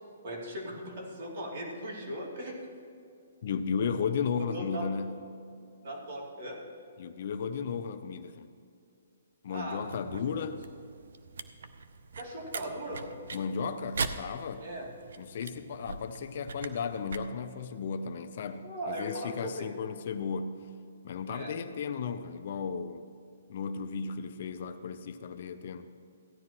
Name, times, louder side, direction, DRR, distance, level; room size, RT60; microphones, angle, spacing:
voice 1, 0.2-2.6 4.4-4.9 5.8-6.6 9.5-9.8 10.5-10.6 12.2-13.1 14.6-14.9 18.6-19.7 21.3-21.5, right 1 dB, 50° right, -2 dB, 2.7 m, -38 dB
voice 2, 3.4-5.3 7.0-8.5 9.4-10.6 13.3-20.7 21.0-23.1 23.5-25.9, left 6 dB, 50° left, 10 dB, 0.6 m, -35 dB
sound 1, 9.8-17.2, right 4 dB, 70° right, 0.6 m, -41 dB
15.5 x 10.5 x 3.0 m, 2.4 s
hypercardioid pair, 155°, 0 cm